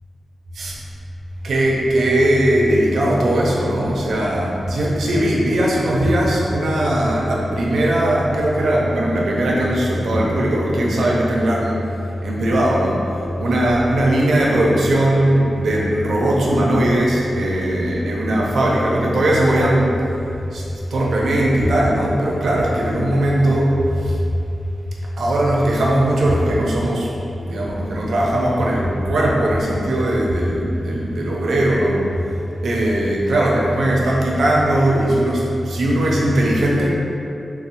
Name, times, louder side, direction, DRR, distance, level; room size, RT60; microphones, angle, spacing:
voice 1, 1.4-11.8 12.2-13.1 13.4-19.9 20.5-24.2 25.2-27.1 27.5-32.1 32.6-36.9, right 1 dB, 90° right, -3 dB, 0.5 m, -19 dB
4.0 x 2.1 x 2.5 m, 2.7 s
wide cardioid pair, 180°, 0 cm